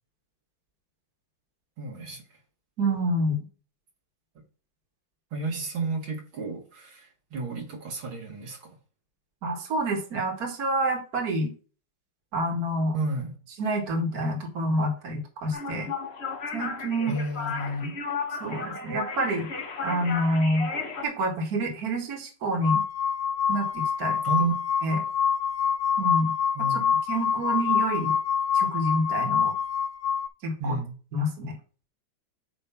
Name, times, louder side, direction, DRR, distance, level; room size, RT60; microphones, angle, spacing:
voice 1, 1.8-2.4 5.3-8.8 12.9-13.3 17.1-18.0 24.2-24.5 24.8-25.0 26.5-27.0 30.6-30.9, right 3 dB, 75° right, 0 dB, 2.7 m, -32 dB
voice 2, 2.8-3.5 9.4-11.5 12.3-13.0 13.6-15.9 16.5-17.1 18.4-19.5 19.8-20.7 21.0-22.8 23.5-24.2 24.8-25.0 26.0-26.3 26.6-26.8 27.1-28.1 28.5-29.5 30.4-30.8 31.1-31.6, right 1 dB, 45° right, 1 dB, 2.1 m, -27 dB
sound 1, 15.5-21.0, left 4 dB, 40° left, 1.0 m, -34 dB
sound 2, 22.6-30.3, left 7 dB, 65° left, 0.8 m, -26 dB
9.1 x 3.1 x 5.7 m, 0.37 s
omnidirectional pair, 2.2 m